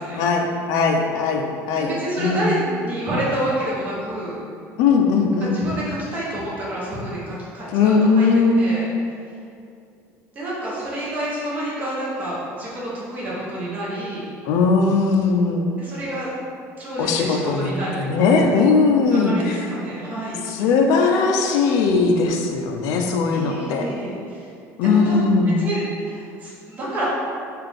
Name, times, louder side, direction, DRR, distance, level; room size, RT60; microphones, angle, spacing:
voice 1, 0.2-1.9 2.2-2.5 4.8-5.6 7.7-8.9 14.4-15.7 17.0-19.6 20.5-23.9 24.8-25.6, left 4 dB, 65° left, 3 dB, 0.4 m, -19 dB
voice 2, 1.8-4.3 5.4-8.3 8.6-8.8 10.3-14.2 15.8-16.3 16.8-18.5 19.1-20.4 23.3-24.5 24.8-25.2 25.6-27.1, right 1 dB, 25° right, -7 dB, 0.9 m, -28 dB
3.7 x 2.4 x 3.3 m, 2.4 s
cardioid pair, 165°, 6 cm